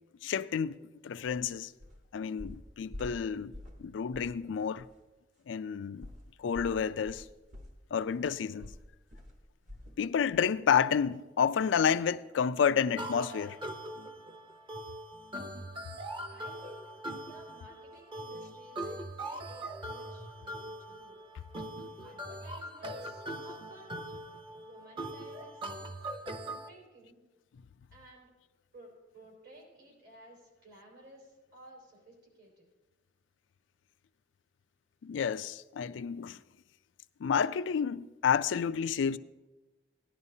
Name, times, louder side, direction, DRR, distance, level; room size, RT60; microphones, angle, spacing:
voice 1, 0.2-1.7 2.1-3.5 3.8-4.8 5.5-6.1 6.4-7.2 7.9-8.7 10.0-13.6 35.0-36.4 37.2-39.2, left 7 dB, 85° left, 0.4 m, -30 dB
sound 1, 1.8-2.0 2.4-3.8 4.1-4.4 4.8-4.9 6.0-10.0 10.3-10.5 10.9-11.0, left 1 dB, 45° right, 1.3 m, -47 dB
sound 2, 13.0-26.7, right 1 dB, 25° right, 0.8 m, -41 dB
voice 2, 16.3-16.9 17.3-21.2 22.0-24.0 24.6-25.8 26.7-27.2 27.9-28.3 28.7-32.7, right 1 dB, 60° right, 4.5 m, -55 dB
17.5 x 11.0 x 2.7 m
head